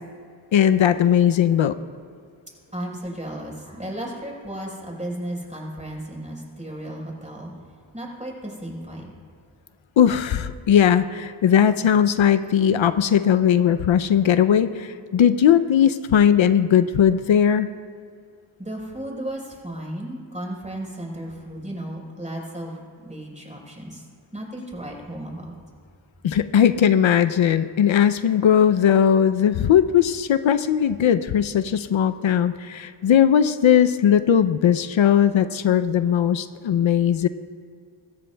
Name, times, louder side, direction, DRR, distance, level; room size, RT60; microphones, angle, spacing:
voice 1, 0.5-1.7 10.0-17.7 26.2-37.3, left 9 dB, 70° left, 11 dB, 0.6 m, -18 dB
voice 2, 2.7-7.5 7.9-9.1 18.6-24.0 24.3-25.5, right 1 dB, 15° right, -2 dB, 4.3 m, -34 dB
25.5 x 14.0 x 2.3 m, 2.1 s
cardioid pair, 60°, 49 cm